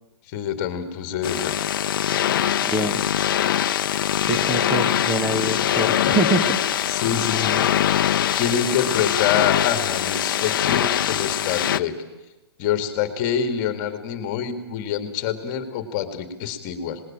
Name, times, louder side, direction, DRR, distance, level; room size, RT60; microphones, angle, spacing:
voice 1, 0.3-1.5 6.9-7.6 8.3-12.0 12.6-17.0, left 8 dB, 30° left, 9 dB, 2.2 m, -26 dB
sound 1, 1.2-11.8, left 10 dB, 55° left, 0.8 m, -22 dB
voice 2, 2.6-3.0 4.2-6.5, right 2 dB, 5° right, 3 dB, 1.1 m, -24 dB
27.0 x 19.5 x 8.9 m, 1.1 s
hypercardioid pair, 165°, 14 cm